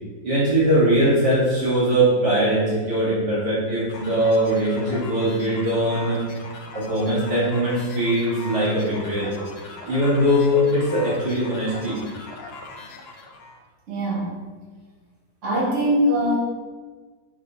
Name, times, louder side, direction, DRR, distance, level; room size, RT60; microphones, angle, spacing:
voice 1, 0.2-6.2 6.7-9.3 9.8-12.0, right 1 dB, 60° right, -8 dB, 2.1 m, -21 dB
sound 1, 3.9-13.6, left 3 dB, 55° left, 0.7 m, -40 dB
voice 2, 13.9-14.4 15.4-16.4, equal, 40° right, -7 dB, 2.2 m, -22 dB
7.2 x 6.0 x 2.8 m, 1.4 s
omnidirectional pair, 2.1 m